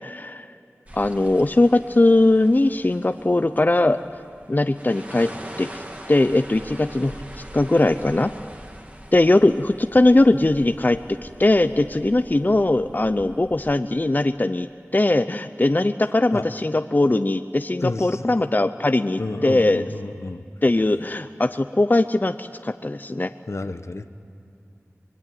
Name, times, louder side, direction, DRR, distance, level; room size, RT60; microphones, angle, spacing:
voice 1, 0.0-0.4 0.9-4.0 4.5-5.3 5.6-5.7 6.1-7.1 7.5-8.3 9.1-11.0 11.4-14.7 14.9-19.9 20.6-23.3, left 2 dB, 35° left, 10 dB, 0.6 m, -20 dB
sound 1, 0.9-13.7, right 1 dB, 30° right, 2.1 m, -43 dB
voice 2, 17.8-18.3 19.2-20.4 23.5-24.1, left 2 dB, 65° left, 10 dB, 1.0 m, -30 dB
24.5 x 21.5 x 9.2 m, 2.7 s
wide cardioid pair, 55°, 5 cm